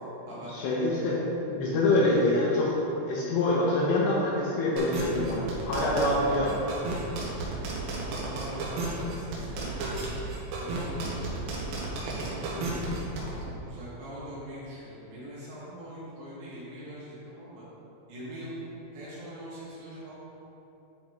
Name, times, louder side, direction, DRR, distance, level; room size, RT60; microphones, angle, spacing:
voice 1, 0.5-1.2 1.5-2.7 3.1-6.6 12.5-12.9, left 2 dB, 80° left, -5 dB, 2.8 m, -26 dB
sound 1, 4.8-13.3, right 3 dB, 85° right, 3.7 m, -33 dB
voice 2, 7.2-7.6 7.9-10.2 10.6-11.4 12.1-12.7 13.1-17.6 18.1-20.1, equal, 65° right, -9 dB, 3.7 m, -43 dB
10.5 x 5.0 x 3.1 m, 3.0 s
omnidirectional pair, 5.7 m